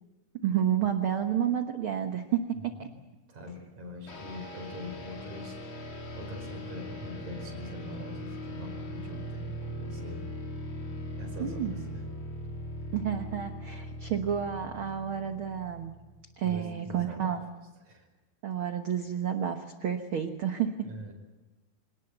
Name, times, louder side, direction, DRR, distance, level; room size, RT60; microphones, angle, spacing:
voice 1, 0.4-2.9 11.4-11.8 12.9-15.9 16.4-17.4 18.4-20.9, right 9 dB, 70° right, 6 dB, 1.2 m, -30 dB
voice 2, 2.5-3.0 3.3-5.6 6.2-10.2 10.9-12.0 16.4-17.4 17.8-18.1 20.8-21.1, left 1 dB, 50° right, 2 dB, 6.3 m, -43 dB
sound 1, 4.1-16.3, equal, 35° left, 3.6 m, -40 dB
26.0 x 19.0 x 8.0 m, 1.2 s
omnidirectional pair, 4.2 m